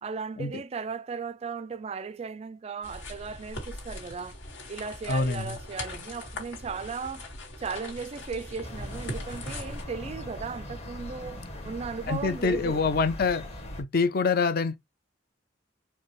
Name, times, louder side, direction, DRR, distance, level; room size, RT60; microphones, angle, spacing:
voice 1, 0.0-4.4 4.7-7.3 7.6-12.8, right 5 dB, 35° right, 0.3 m, -36 dB
sound 1, 2.8-9.8, left 2 dB, 75° left, 1.7 m, -40 dB
voice 2, 5.1-5.6 12.1-13.5 13.8-14.8, left 4 dB, 50° left, 0.5 m, -26 dB
sound 2, 8.6-13.8, left 1 dB, 35° left, 1.1 m, -40 dB
4.6 x 2.2 x 3.0 m
head